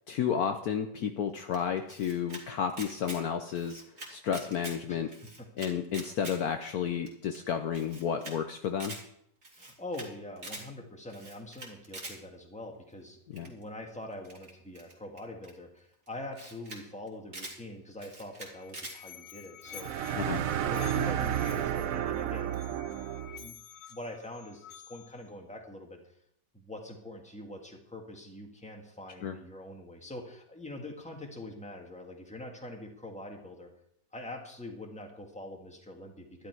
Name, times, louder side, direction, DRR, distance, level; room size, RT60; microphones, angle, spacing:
voice 1, 0.1-3.8 4.1-5.1 5.6-8.9 13.3-13.5 20.1-20.4 29.2-29.3, left 8 dB, 65° left, 7 dB, 1.1 m, -32 dB
Camera, 1.5-2.4 2.7-3.2 3.5-4.8 5.1-6.4 6.7-6.8 7.1-7.2 7.3-7.4 7.7-8.3 8.6-9.0 9.4-10.1 10.4-10.6 11.1-12.2 13.4-13.6 14.2-15.5 16.1-16.2 16.3-16.8 17.1-17.6 18.0-19.0, right 2 dB, 40° right, 2.7 m, -44 dB
voice 2, 4.9-5.5 9.6-20.1 20.6-22.7 23.4-23.5 23.9-26.0 26.5-33.7 34.1-36.5, left 1 dB, 5° left, 2 dB, 1.7 m, -44 dB
Musical instrument, 18.3-25.3, left 11 dB, 80° left, 1.4 m, -50 dB
sound 1, 19.7-23.5, right 10 dB, 65° right, 0.9 m, -31 dB
12.0 x 11.5 x 4.6 m, 0.74 s
omnidirectional pair, 1.9 m